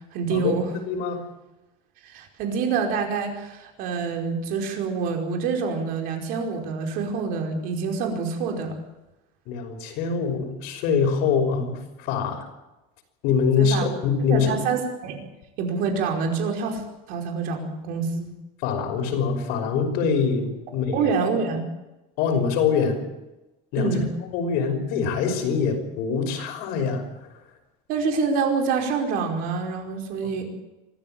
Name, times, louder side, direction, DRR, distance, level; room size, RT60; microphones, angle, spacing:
voice 1, 0.1-0.7 2.0-8.8 13.6-13.9 14.3-15.2 15.6-16.8 17.1-18.3 20.9-21.7 23.8-24.1 27.9-30.5, right 5 dB, 55° right, 3 dB, 5.0 m, -26 dB
voice 2, 0.9-1.2 9.5-12.5 13.2-14.6 18.6-21.1 22.2-23.0 23.7-24.0 24.3-27.0, left 6 dB, 60° left, 5 dB, 5.6 m, -24 dB
25.0 x 14.5 x 9.1 m, 1.0 s
cardioid pair, 155°, 18 cm